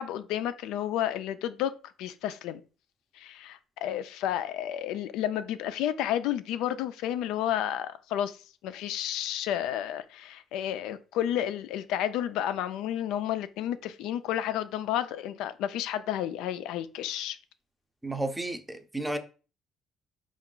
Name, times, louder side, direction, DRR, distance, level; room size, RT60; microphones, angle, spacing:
voice 1, 0.0-2.6 3.2-8.4 8.6-17.4, left 11 dB, 85° left, 0.4 m, -31 dB
voice 2, 18.0-19.2, right 2 dB, 10° right, 0.5 m, -32 dB
4.5 x 2.4 x 3.7 m
cardioid pair, 120°, 0 cm